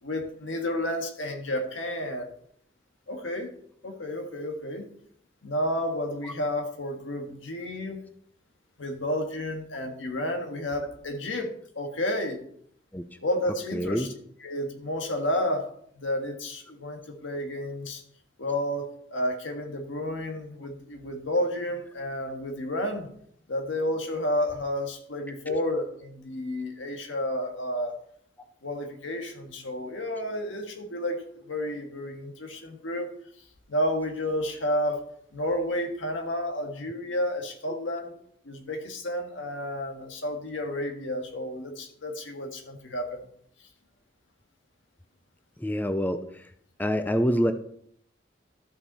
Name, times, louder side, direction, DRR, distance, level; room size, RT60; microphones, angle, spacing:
voice 1, 0.0-2.3 3.1-3.5 3.8-4.9 5.4-8.0 8.8-12.4 13.2-14.1 14.4-15.7 15.9-18.0 18.4-23.1 23.5-27.9 28.6-33.1 33.7-38.2 38.4-43.2, left 1 dB, 90° left, 4 dB, 1.7 m, -31 dB
voice 2, 13.7-14.1 25.5-25.6 45.6-46.5 46.8-47.5, equal, 10° left, 9 dB, 0.5 m, -26 dB
13.0 x 5.8 x 4.2 m, 0.65 s
head